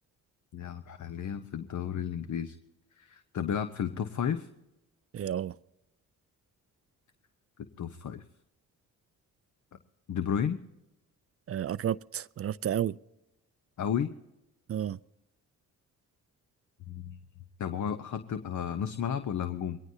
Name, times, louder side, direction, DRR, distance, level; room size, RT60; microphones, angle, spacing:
voice 1, 0.5-2.6 3.0-4.5 7.8-8.2 10.1-10.6 13.8-14.1 16.9-17.2 17.6-19.8, left 8 dB, 55° left, 0.9 m, -33 dB
voice 2, 5.1-5.6 11.5-13.0 14.7-15.0, right 10 dB, 40° right, 0.4 m, -31 dB
22.5 x 18.0 x 2.8 m
cardioid pair, 65°, 35 cm